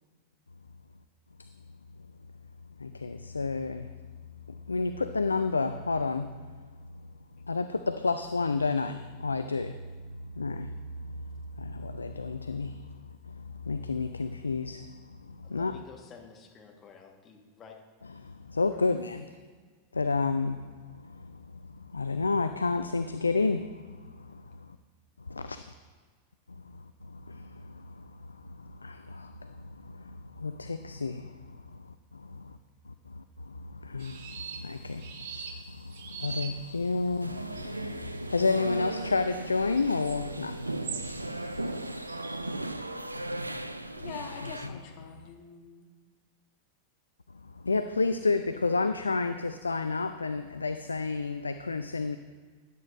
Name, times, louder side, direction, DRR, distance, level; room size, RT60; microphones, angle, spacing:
voice 1, 2.8-3.9 4.5-6.5 7.4-9.8 10.1-12.9 13.2-15.8 18.2-19.3 19.9-24.8 25.3-25.6 26.5-32.6 32.9-37.6 38.1-41.7 44.4-44.8 47.3-52.2, left 3 dB, 80° left, 0.3 m, -31 dB
voice 2, 15.4-17.8, left 6 dB, 25° left, 1.4 m, -51 dB
sound 1, 34.0-42.4, right 6 dB, 55° right, 1.1 m, -44 dB
sound 2, 37.2-44.7, right 1 dB, 85° right, 0.4 m, -36 dB
voice 3, 43.9-45.9, left 7 dB, 45° left, 1.2 m, -45 dB
12.0 x 10.5 x 2.5 m
figure-of-eight pair, 90°, 0 cm